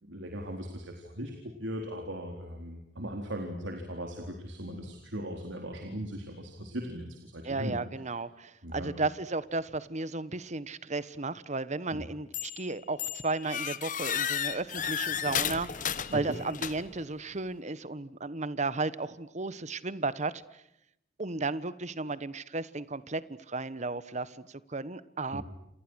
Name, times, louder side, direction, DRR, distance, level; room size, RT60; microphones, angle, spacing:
voice 1, 0.0-7.8 8.6-8.9 11.9-12.1 16.1-16.4 25.3-25.4, equal, 75° right, 3 dB, 4.0 m, -38 dB
voice 2, 7.4-20.3 21.2-23.2 23.5-25.4, right 3 dB, 40° right, 16 dB, 1.2 m, -34 dB
sound 1, 12.3-12.7 13.0-17.0, left 9 dB, 45° left, 1.4 m, -33 dB
29.0 x 28.5 x 6.4 m, 0.80 s
head